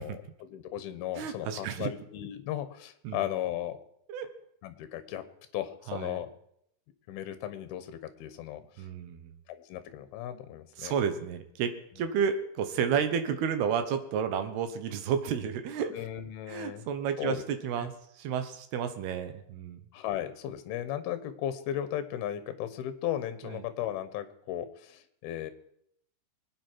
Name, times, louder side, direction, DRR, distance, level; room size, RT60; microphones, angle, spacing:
voice 1, 0.0-3.8 4.6-5.2 5.5-6.3 7.1-8.8 9.5-10.9 15.9-16.9 17.2-17.5 17.8-17.9 19.9-25.5, left 11 dB, 70° left, 11 dB, 2.8 m, -36 dB
voice 2, 1.2-1.9 3.0-3.3 4.1-4.3 5.9-6.2 8.8-9.4 10.8-15.9 16.5-19.8 23.5-23.6, right 7 dB, 75° right, 9 dB, 3.0 m, -31 dB
24.5 x 9.3 x 4.6 m, 0.73 s
omnidirectional pair, 4.9 m